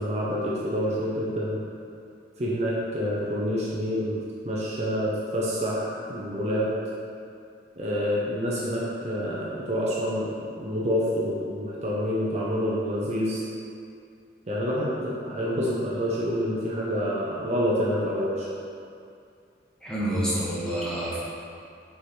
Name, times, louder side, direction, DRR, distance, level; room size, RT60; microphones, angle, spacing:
voice 1, 0.0-1.6 2.4-6.7 7.8-10.3 10.6-13.4 14.5-18.5, equal, 40° right, -6 dB, 0.7 m, -27 dB
voice 2, 19.8-21.2, right 1 dB, 5° left, -9 dB, 1.2 m, -28 dB
4.8 x 4.8 x 4.3 m, 2.4 s
head